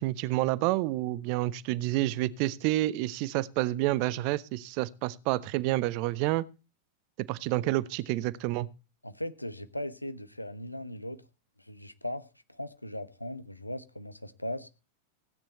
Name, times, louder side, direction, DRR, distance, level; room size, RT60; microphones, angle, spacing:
voice 1, 0.0-6.4 7.3-8.7, right 17 dB, 45° right, 0.8 m, -29 dB
voice 2, 9.0-11.2 11.6-12.2 12.5-14.7, left 1 dB, 85° left, 1.1 m, -38 dB
16.5 x 8.9 x 4.2 m
figure-of-eight pair, 90°, 0 cm